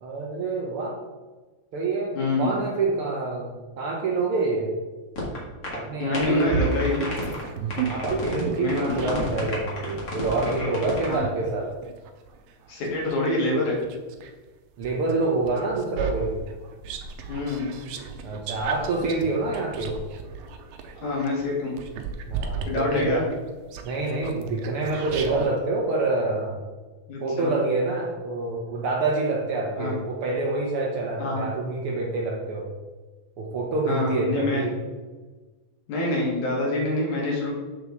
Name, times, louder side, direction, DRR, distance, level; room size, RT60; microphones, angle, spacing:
voice 1, 0.0-0.9 1.7-4.7 5.7-6.6 7.9-11.7 14.8-16.4 18.2-20.0 22.3-23.2 23.8-26.6 27.2-32.7 33.4-34.8, right 3 dB, 65° right, 0 dB, 1.4 m, -27 dB
voice 2, 2.1-2.6 6.0-7.0 8.6-9.2 11.1-11.3 12.7-13.8 17.3-17.7 21.0-21.7 22.6-23.2 27.1-27.5 29.8-30.0 31.2-31.5 33.9-34.6 35.9-37.5, left 2 dB, 90° left, -4 dB, 3.4 m, -26 dB
sound 1, 5.2-5.4 5.6-5.8 6.1-7.4 7.7-8.4 8.7-11.1, left 2 dB, 35° left, 1.9 m, -32 dB
sound 2, 6.5-9.4 10.0-14.3 14.8-25.5, right 5 dB, 85° right, 2.1 m, -34 dB
7.5 x 6.8 x 3.5 m, 1.3 s
omnidirectional pair, 3.3 m